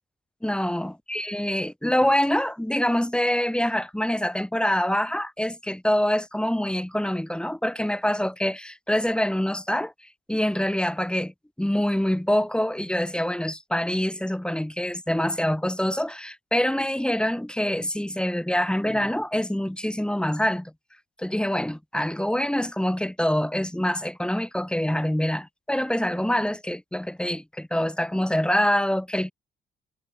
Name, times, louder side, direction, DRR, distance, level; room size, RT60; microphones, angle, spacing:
voice 1, 0.4-9.9 10.3-11.3 11.6-20.7 21.2-29.3, left 1 dB, 5° left, 2.1 m, -25 dB
cardioid pair, 90°, 20 cm